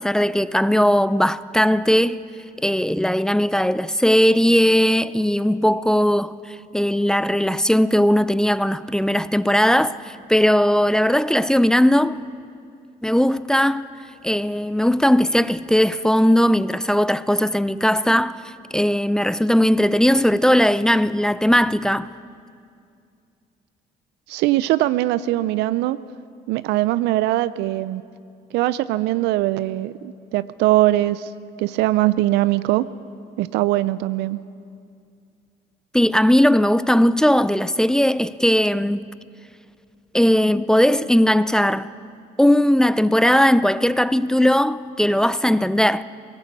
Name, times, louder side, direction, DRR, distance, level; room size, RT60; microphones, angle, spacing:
voice 1, 0.0-2.2 2.6-12.2 13.0-13.9 14.2-22.1 35.9-39.0 40.1-41.9 42.4-46.0, equal, 5° left, 0.4 m, -18 dB
voice 2, 24.3-26.0 26.5-28.0 28.5-31.3 31.6-32.9 33.4-34.4, right 16 dB, 90° right, 0.5 m, -21 dB
18.5 x 17.0 x 8.2 m
cardioid pair, 110°, 17 cm